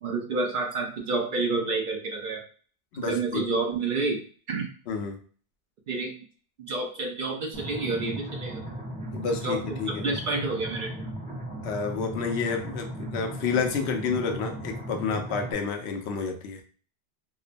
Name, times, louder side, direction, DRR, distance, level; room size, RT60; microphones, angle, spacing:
voice 1, 0.0-2.4 2.9-4.7 5.9-6.2 6.6-8.6 9.3-11.1, right 3 dB, 60° right, 1 dB, 0.6 m, -29 dB
voice 2, 2.9-3.4 4.9-5.2 9.1-10.0 11.6-16.6, left 5 dB, 80° left, 5 dB, 0.8 m, -30 dB
sound 1, 7.5-15.5, right 1 dB, 10° right, 0.6 m, -37 dB
2.9 x 2.0 x 2.5 m, 0.42 s
omnidirectional pair, 1.1 m